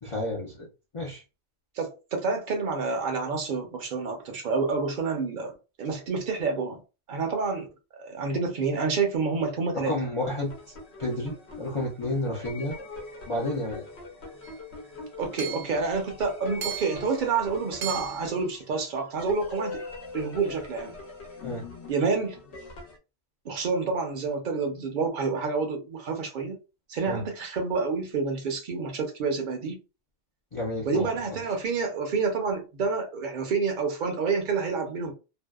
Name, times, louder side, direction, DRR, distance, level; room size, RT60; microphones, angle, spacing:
voice 1, 0.0-0.7 0.9-1.2 9.7-10.5 11.0-12.7 13.3-13.8 21.4-21.7 27.0-27.2 30.5-31.1, left 1 dB, 35° left, 0.5 m, -31 dB
voice 2, 1.8-6.8 7.1-7.7 8.0-9.9 15.2-19.8 20.1-21.0 21.9-22.4 23.4-26.6 26.9-29.8 30.8-35.1, right 4 dB, 50° right, 0.7 m, -28 dB
sound 1, 10.1-23.0, left 3 dB, 70° left, 0.9 m, -42 dB
Hammer / Chink clink, 14.4-14.6 15.4-15.8 16.6-17.1 17.8-18.3, right 10 dB, 85° right, 0.9 m, -35 dB
2.6 x 2.1 x 2.3 m
omnidirectional pair, 1.1 m